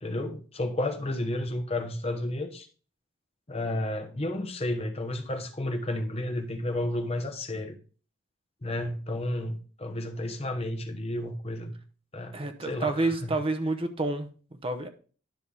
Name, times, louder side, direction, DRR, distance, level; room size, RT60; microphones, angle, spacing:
voice 1, 0.0-2.7 3.5-7.7 8.6-11.7 12.1-13.4, left 1 dB, 30° left, 5 dB, 1.1 m, -32 dB
voice 2, 12.3-14.9, right 2 dB, 30° right, 7 dB, 0.8 m, -29 dB
10.5 x 5.6 x 3.5 m, 0.40 s
head